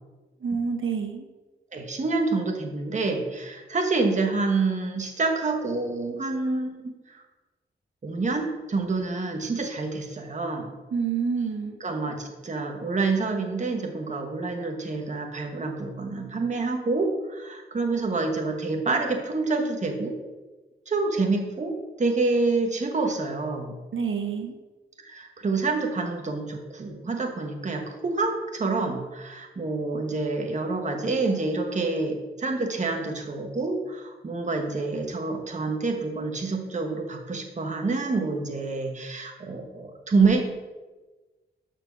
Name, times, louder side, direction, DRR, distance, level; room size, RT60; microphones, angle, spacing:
voice 1, 0.4-1.2 10.9-11.8 23.9-24.5, right 6 dB, 90° right, 4 dB, 1.2 m, -28 dB
voice 2, 1.7-7.2 8.0-10.7 11.8-20.1 20.9-23.8 25.0-40.4, right 3 dB, 35° right, 3 dB, 1.2 m, -27 dB
12.5 x 4.5 x 6.2 m, 1.2 s
wide cardioid pair, 175°, 20 cm